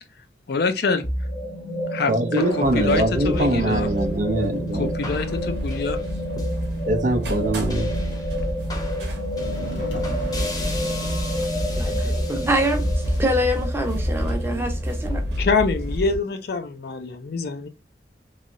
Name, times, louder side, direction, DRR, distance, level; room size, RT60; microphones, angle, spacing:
voice 1, 0.5-1.1 1.9-3.9 4.7-6.0 15.4-17.7, left 4 dB, 60° left, 0.5 m, -25 dB
sound 1, 1.0-15.5, equal, 20° left, 0.8 m, -30 dB
voice 2, 2.1-4.9 6.9-7.9, right 1 dB, 45° right, 0.5 m, -23 dB
sound 2, 2.6-16.2, equal, 70° right, 0.9 m, -28 dB
sound 3, 9.4-16.2, equal, 90° left, 1.2 m, -40 dB
voice 3, 11.8-15.2, equal, 15° right, 0.7 m, -25 dB
3.1 x 2.8 x 2.6 m
head